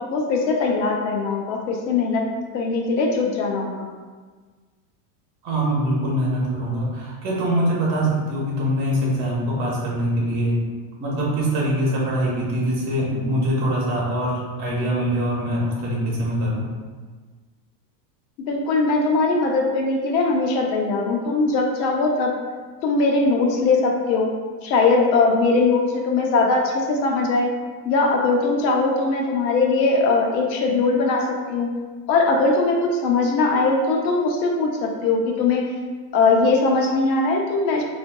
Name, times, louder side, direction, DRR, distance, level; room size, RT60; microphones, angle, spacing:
voice 1, 0.1-2.2 2.5-3.9 18.4-22.3 22.8-24.3 24.6-27.5 27.8-31.7 32.1-35.7 36.1-37.8, left 3 dB, 90° left, 1 dB, 0.8 m, -20 dB
voice 2, 5.4-10.6 11.0-16.7, right 1 dB, 35° right, -4 dB, 0.9 m, -23 dB
4.5 x 2.6 x 2.2 m, 1.5 s
supercardioid pair, 155°, 50 cm